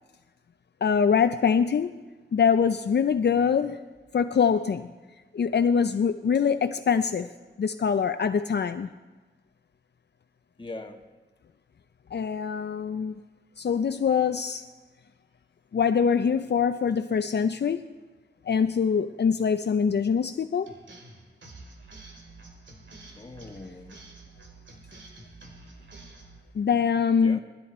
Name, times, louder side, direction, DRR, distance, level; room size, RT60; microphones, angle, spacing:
voice 1, 0.8-1.9 2.3-3.8 4.1-4.9 5.3-7.3 7.6-8.9 12.1-13.1 13.6-14.6 15.7-17.9 18.5-20.7 26.6-27.4, left 6 dB, 65° left, 9 dB, 0.5 m, -24 dB
voice 2, 3.3-3.7 10.6-11.0 23.1-24.0 27.2-27.4, left 2 dB, 25° left, 5 dB, 1.4 m, -42 dB
sound 1, 20.7-26.4, right 3 dB, 85° right, 2.2 m, -48 dB
19.0 x 13.5 x 4.3 m, 1.3 s
wide cardioid pair, 60°, 19 cm